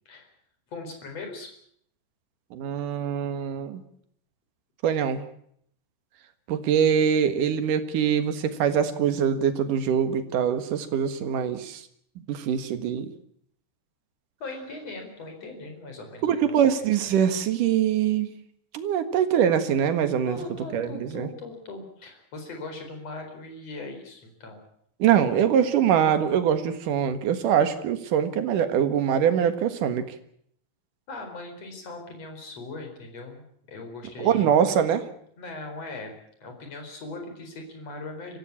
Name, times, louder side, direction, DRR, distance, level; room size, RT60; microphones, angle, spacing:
voice 1, 0.7-1.5 14.4-16.5 20.2-24.6 25.2-25.3 31.1-34.5 35.4-36.2 36.4-38.4, left 2 dB, 45° left, 4 dB, 5.4 m, -39 dB
voice 2, 2.5-3.8 4.8-5.2 6.5-11.8 12.3-13.1 16.2-18.3 18.7-20.4 20.7-21.3 25.0-30.0 34.2-35.1, right 8 dB, 70° right, 10 dB, 3.1 m, -23 dB
24.0 x 15.5 x 8.6 m, 0.68 s
omnidirectional pair, 4.0 m